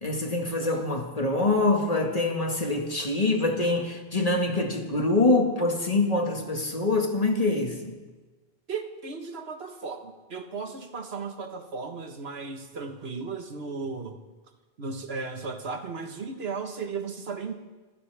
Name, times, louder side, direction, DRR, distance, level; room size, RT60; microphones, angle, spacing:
voice 1, 0.0-8.0, left 2 dB, 35° left, 2 dB, 1.9 m, -25 dB
voice 2, 8.7-14.2 14.8-17.5, right 4 dB, 75° right, 6 dB, 1.6 m, -35 dB
24.5 x 15.5 x 3.5 m, 1.3 s
omnidirectional pair, 1.1 m